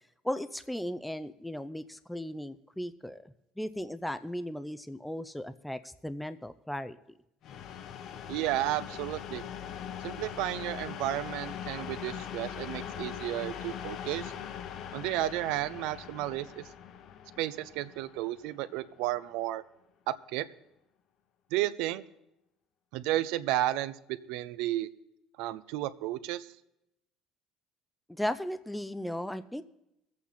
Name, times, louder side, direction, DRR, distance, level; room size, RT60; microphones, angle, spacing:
voice 1, 0.2-7.0 28.1-29.6, left 1 dB, 5° left, 11 dB, 0.5 m, -36 dB
sound 1, 7.4-19.1, left 9 dB, 60° left, 0.8 m, -41 dB
voice 2, 8.3-9.4 10.0-14.3 14.9-16.6 17.4-19.6 20.1-20.4 21.5-22.0 22.9-24.9 25.4-26.5, right 14 dB, 80° right, 14 dB, 0.6 m, -32 dB
21.0 x 8.5 x 4.2 m, 0.84 s
supercardioid pair, 105°, 0 cm